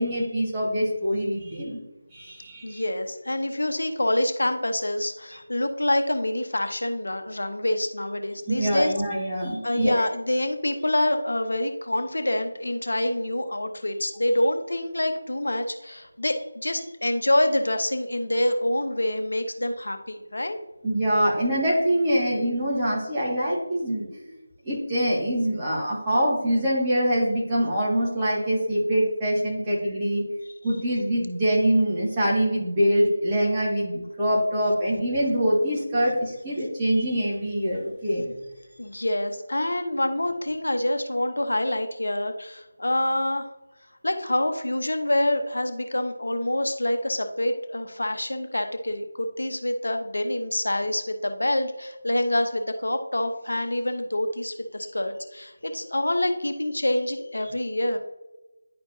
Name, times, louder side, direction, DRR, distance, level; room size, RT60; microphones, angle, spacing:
voice 1, 0.0-1.8 2.1-2.8 8.5-10.1 20.8-30.2 30.6-38.3, equal, 20° right, -7 dB, 1.9 m, -24 dB
voice 2, 2.6-8.9 9.6-20.6 38.8-43.5 44.0-58.0, left 1 dB, 75° left, 7 dB, 1.0 m, -26 dB
10.5 x 4.5 x 2.7 m, 1.0 s
figure-of-eight pair, 165°, 0 cm